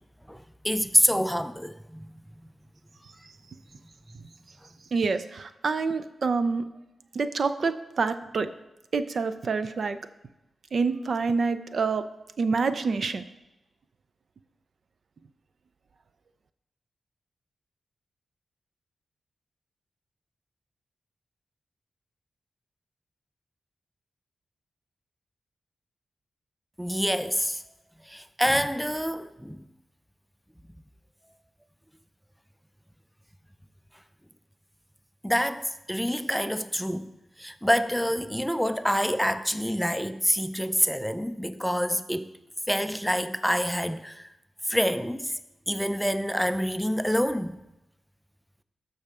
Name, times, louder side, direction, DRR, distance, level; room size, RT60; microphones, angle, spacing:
voice 1, 0.3-2.1 26.8-27.6 28.1-29.6 35.2-37.1 37.4-42.3 42.7-44.3 44.7-45.3 45.7-47.6, equal, ahead, 0.4 m, -27 dB
voice 2, 4.9-6.7 7.1-8.5 8.9-10.0 10.7-12.0 12.4-13.2, right 4 dB, 60° right, 0.5 m, -27 dB
13.5 x 5.5 x 3.5 m
cardioid pair, 75°, 0 cm